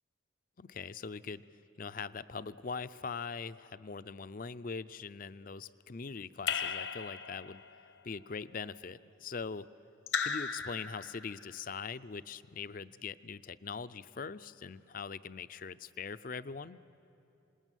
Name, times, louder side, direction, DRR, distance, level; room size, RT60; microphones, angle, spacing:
voice 1, 0.6-1.4 1.8-7.6 8.0-9.7 10.2-16.8, left 5 dB, 45° left, 15 dB, 0.5 m, -42 dB
Raindrop / Drip, 6.5-7.7 10.1-11.4, left 6 dB, 70° left, 1.0 m, -36 dB
27.0 x 20.0 x 9.1 m, 2.8 s
head